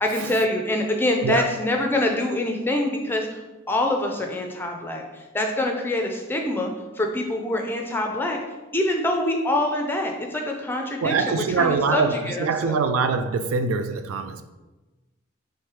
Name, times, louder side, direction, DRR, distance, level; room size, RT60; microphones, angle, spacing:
voice 1, 0.0-3.4 3.7-6.7 7.0-8.4 8.7-12.8, left 1 dB, 10° left, 2 dB, 0.4 m, -25 dB
voice 2, 11.0-14.4, right 4 dB, 80° right, 10 dB, 0.3 m, -23 dB
3.2 x 3.2 x 4.6 m, 1.1 s
head